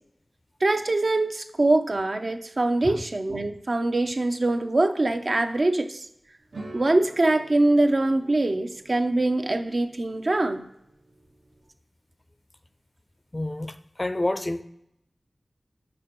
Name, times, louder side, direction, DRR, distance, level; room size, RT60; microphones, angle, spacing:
voice 1, 0.6-6.0 6.7-10.6, right 2 dB, 60° right, 7 dB, 0.6 m, -23 dB
sound 1, 6.5-11.7, right 2 dB, 80° right, 0.9 m, -46 dB
voice 2, 13.3-14.6, left 1 dB, 35° left, 10 dB, 0.4 m, -29 dB
5.1 x 4.4 x 5.2 m, 0.77 s
wide cardioid pair, 55°, 0 cm